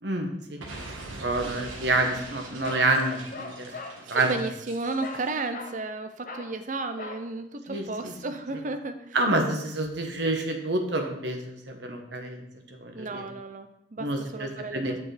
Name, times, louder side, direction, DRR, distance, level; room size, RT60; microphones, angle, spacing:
voice 1, 0.0-3.7 4.1-4.3 7.7-8.1 9.1-12.4 12.7-13.3 14.0-15.0, right 2 dB, 60° right, 4 dB, 1.1 m, -28 dB
Explosion, 0.6-5.4, right 2 dB, 80° right, 1.4 m, -42 dB
Bark, 2.6-4.0 5.0-5.3 5.5-5.8 6.2-6.5 7.0-7.3, left 3 dB, 45° left, 0.8 m, -39 dB
voice 2, 3.7-9.2 12.9-15.0, right 3 dB, 40° right, 8 dB, 0.6 m, -34 dB
7.8 x 6.9 x 3.3 m, 0.79 s
head